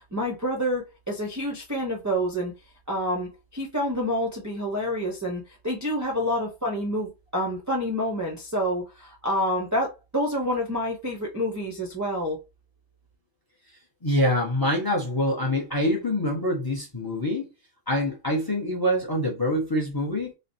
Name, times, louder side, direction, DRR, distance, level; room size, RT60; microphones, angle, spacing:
voice 1, 0.1-2.5 2.9-12.4, equal, 25° right, 0.4 m, -28 dB
voice 2, 14.0-17.5 17.9-20.3, left 1 dB, 25° left, 0.5 m, -25 dB
3.1 x 2.0 x 2.6 m
omnidirectional pair, 1.3 m